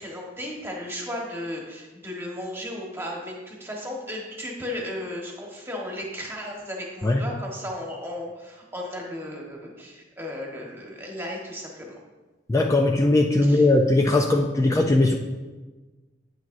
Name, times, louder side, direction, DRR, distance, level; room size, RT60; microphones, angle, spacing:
voice 1, 0.0-12.0 13.4-13.7, left 1 dB, 10° right, -1 dB, 1.3 m, -35 dB
voice 2, 12.5-15.1, left 2 dB, 15° left, 2 dB, 0.4 m, -19 dB
9.2 x 9.1 x 2.6 m, 1.3 s
head